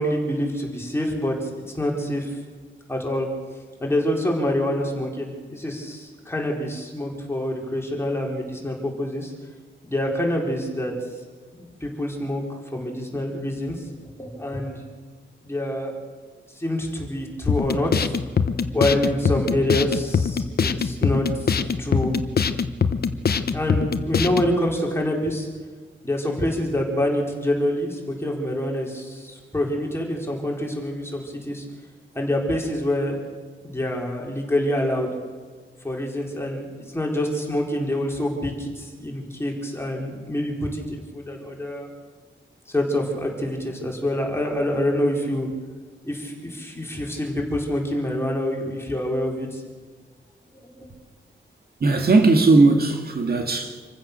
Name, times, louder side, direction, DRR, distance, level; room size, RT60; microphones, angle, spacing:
voice 1, 0.0-1.5 1.7-2.4 2.9-3.3 3.8-9.3 9.9-10.9 11.5-12.4 12.7-14.8 15.4-15.9 16.6-18.1 18.7-22.1 23.5-25.5 26.0-31.6 32.1-33.2 33.6-35.1 35.8-41.9 42.7-45.5 46.0-49.6 50.8-50.9, left 1 dB, 10° left, 4.4 m, -26 dB
sound 1, 17.5-24.5, left 6 dB, 50° left, 1.0 m, -23 dB
voice 2, 51.8-53.9, right 3 dB, 50° right, 2.0 m, -18 dB
27.0 x 15.5 x 6.9 m
wide cardioid pair, 170°, 20 cm